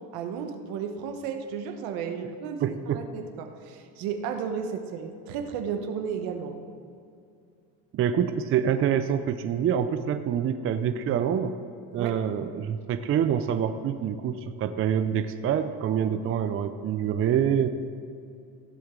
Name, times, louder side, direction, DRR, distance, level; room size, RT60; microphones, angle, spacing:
voice 1, 0.1-6.6 12.0-12.1, right 7 dB, 80° right, 6 dB, 1.1 m, -33 dB
voice 2, 2.6-3.0 7.9-11.5 11.9-17.7, right 8 dB, 35° right, 9 dB, 0.5 m, -26 dB
15.5 x 7.7 x 3.7 m, 2.5 s
supercardioid pair, 110°, 37 cm